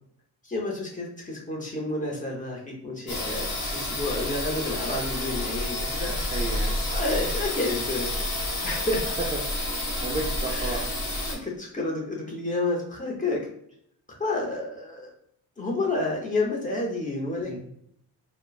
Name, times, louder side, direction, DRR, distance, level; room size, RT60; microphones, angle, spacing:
voice 1, 0.4-6.2 6.9-9.1 10.5-10.8 11.3-13.5 14.1-15.1 15.6-17.6, left 2 dB, 20° left, -1 dB, 0.7 m, -30 dB
sound 1, 3.1-11.3, left 1 dB, 45° left, 1.1 m, -29 dB
voice 2, 6.3-6.8 9.5-10.9 17.5-17.6, right 3 dB, 20° right, -2 dB, 0.3 m, -34 dB
2.9 x 2.1 x 2.3 m, 0.72 s
cardioid pair, 125°, 41 cm